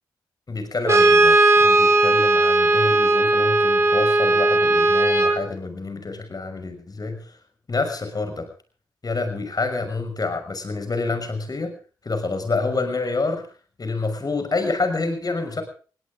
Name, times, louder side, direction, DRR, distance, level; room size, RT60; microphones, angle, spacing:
voice 1, 0.5-7.4 7.7-8.5 9.0-11.7 12.0-13.4 13.8-15.6, left 3 dB, 45° left, 8 dB, 6.1 m, -27 dB
Brass instrument, 0.8-5.4, right 2 dB, 30° right, 5.3 m, -17 dB
21.5 x 18.0 x 3.8 m, 0.39 s
supercardioid pair, 40°, 9 cm